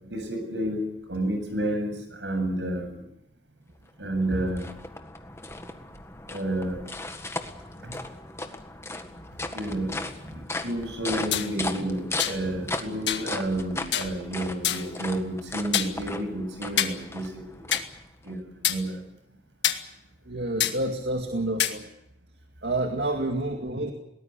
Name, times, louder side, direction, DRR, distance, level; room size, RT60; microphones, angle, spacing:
voice 1, 0.0-3.0 4.0-4.7 6.3-6.9 7.8-8.0 9.5-17.6 18.2-19.0, right 1 dB, 85° right, 5 dB, 7.9 m, -30 dB
sound 1, 3.9-18.3, left 2 dB, 15° left, 1.7 m, -37 dB
sound 2, 11.3-11.5 12.2-12.4 13.1-13.3 13.9-14.1 14.6-14.9 15.7-15.9 16.8-17.0 17.7-17.9 18.6-18.8 19.6-19.8 20.6-20.8 21.6-21.8, left 10 dB, 80° left, 1.8 m, -25 dB
voice 2, 20.3-21.8 22.6-23.9, right 1 dB, 65° right, 3 dB, 2.3 m, -29 dB
22.5 x 19.0 x 8.3 m, 0.84 s
head